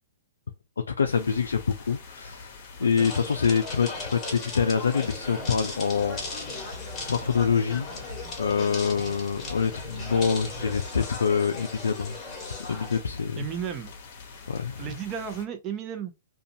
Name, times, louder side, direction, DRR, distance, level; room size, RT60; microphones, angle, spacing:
voice 1, 0.9-6.5 7.0-7.9 8.4-12.2 12.7-13.4 14.5-14.8, left 6 dB, 85° left, 0.3 m, -26 dB
sound 1, 1.1-15.5, left 4 dB, 45° left, 0.9 m, -45 dB
sound 2, 3.0-13.0, left 3 dB, 20° left, 1.2 m, -38 dB
sound 3, 5.3-11.0, right 2 dB, 75° right, 0.8 m, -44 dB
voice 2, 13.4-13.9 14.8-16.1, right 8 dB, 25° right, 0.6 m, -34 dB
2.5 x 2.3 x 2.7 m
hypercardioid pair, 130°, 0 cm